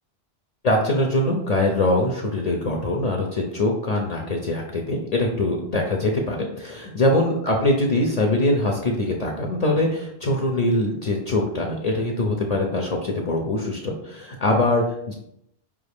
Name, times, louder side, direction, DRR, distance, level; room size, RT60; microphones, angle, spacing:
voice 1, 0.6-15.1, left 1 dB, 50° left, 0 dB, 0.5 m, -23 dB
5.3 x 2.4 x 3.4 m, 0.78 s
omnidirectional pair, 1.1 m